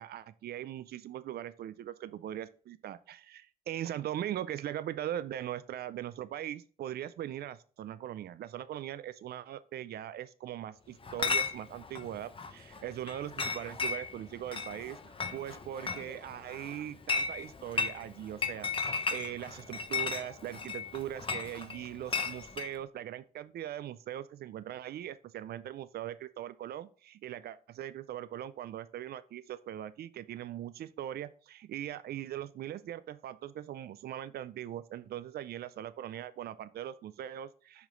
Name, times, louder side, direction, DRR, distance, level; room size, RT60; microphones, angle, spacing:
voice 1, 0.0-18.7 19.1-37.9, right 11 dB, 80° right, 15 dB, 0.4 m, -40 dB
Chatter / Chink clink, 11.0-22.7, left 5 dB, 35° left, 0.8 m, -36 dB
6.4 x 5.0 x 3.8 m, 0.41 s
cardioid pair, 105°, 16 cm